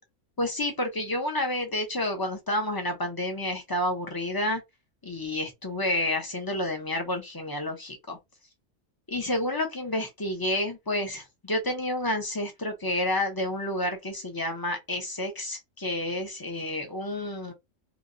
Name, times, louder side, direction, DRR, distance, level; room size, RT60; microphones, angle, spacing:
voice 1, 0.4-4.6 5.0-8.2 9.1-17.5, left 1 dB, 25° left, 0.6 m, -30 dB
2.9 x 2.8 x 2.6 m
omnidirectional pair, 1.3 m